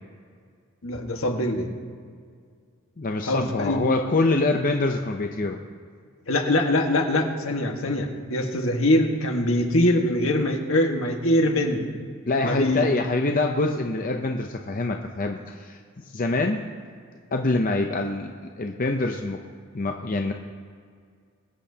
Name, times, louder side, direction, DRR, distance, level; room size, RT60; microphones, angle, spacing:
voice 1, 0.8-1.7 3.2-3.8 6.3-11.8 12.4-12.9, left 1 dB, 75° left, 2 dB, 1.6 m, -23 dB
voice 2, 3.0-5.6 12.3-15.8 16.1-16.6 17.3-18.3 18.6-19.4 19.7-20.3, left 2 dB, 40° left, 3 dB, 0.6 m, -25 dB
22.0 x 8.7 x 2.8 m, 2.1 s
head